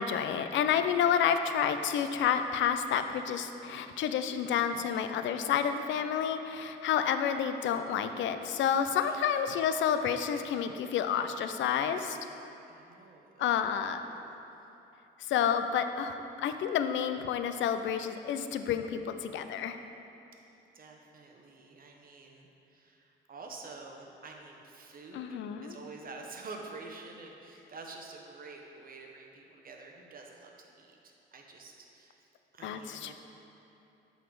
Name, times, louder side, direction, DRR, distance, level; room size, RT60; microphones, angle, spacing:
voice 1, 0.0-12.2 13.4-14.0 15.2-19.8 25.1-25.8 32.6-33.1, left 8 dB, 75° left, 9 dB, 0.4 m, -30 dB
voice 2, 9.0-9.4 12.7-13.5 14.0-14.4 20.7-33.1, right 3 dB, 45° right, 1 dB, 1.0 m, -48 dB
8.2 x 4.1 x 4.7 m, 2.9 s
cardioid pair, 90°, 20 cm